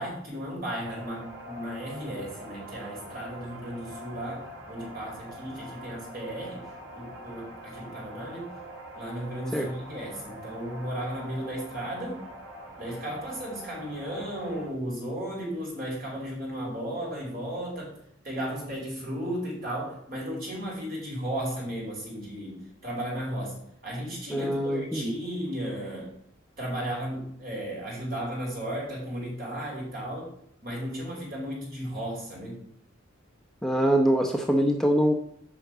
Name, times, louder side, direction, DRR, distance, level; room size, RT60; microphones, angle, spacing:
voice 1, 0.0-8.5 8.9-12.2 12.8-18.0 18.2-26.1 26.6-30.3 30.6-32.6, equal, 45° right, -3 dB, 5.1 m, -35 dB
sound 1, 0.8-14.7, equal, 70° right, 2.6 m, -44 dB
voice 2, 24.3-25.1 33.6-35.1, right 1 dB, ahead, 2 dB, 0.7 m, -24 dB
8.6 x 5.9 x 8.1 m, 0.69 s
head